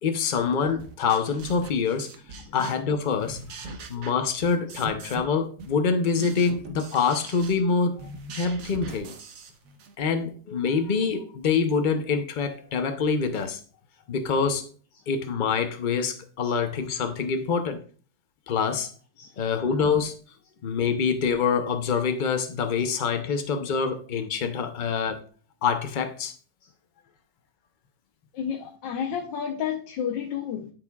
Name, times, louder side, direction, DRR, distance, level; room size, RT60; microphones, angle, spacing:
voice 1, 0.0-2.1 2.5-9.1 10.0-13.6 14.1-14.7 15.1-17.8 18.5-18.9 19.4-20.2 20.6-25.2 25.6-26.3, left 5 dB, 65° left, 0.5 m, -26 dB
sound 1, 0.8-2.9 3.2-5.3 5.6-9.9, right 3 dB, 55° right, 1.1 m, -41 dB
voice 2, 28.3-30.7, left 8 dB, 90° left, 1.5 m, -32 dB
12.0 x 4.9 x 2.3 m
omnidirectional pair, 1.9 m